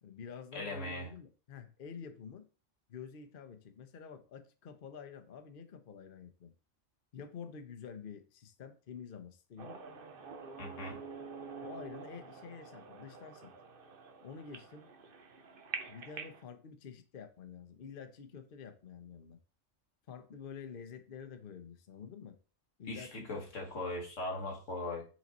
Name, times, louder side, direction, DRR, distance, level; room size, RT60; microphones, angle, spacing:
voice 1, 0.0-2.5 2.9-6.5 7.1-9.8 10.7-11.1 11.6-13.5 14.2-14.9 15.9-19.4 20.1-22.4 22.8-23.4, left 6 dB, 50° left, 0.9 m, -48 dB
voice 2, 0.5-1.1 10.6-11.0 22.9-25.1, left 2 dB, 90° left, 1.8 m, -39 dB
sound 1, 9.6-16.4, right 5 dB, 50° right, 1.0 m, -47 dB
6.0 x 4.0 x 4.1 m
omnidirectional pair, 1.2 m